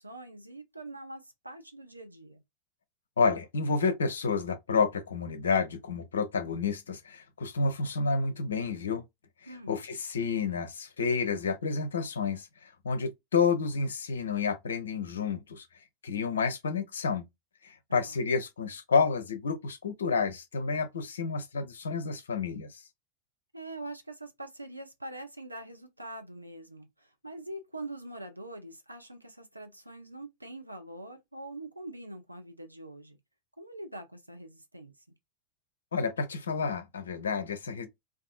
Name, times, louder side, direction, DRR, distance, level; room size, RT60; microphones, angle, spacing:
voice 1, 0.0-2.4 9.5-9.8 17.9-18.3 23.5-33.2 33.6-34.9, right 1 dB, 85° right, 0.5 m, -44 dB
voice 2, 3.2-9.0 9.7-15.7 16.0-17.3 17.6-22.8 35.9-37.9, left 5 dB, 70° left, 0.5 m, -30 dB
2.6 x 2.3 x 2.3 m
figure-of-eight pair, 90°, 0 cm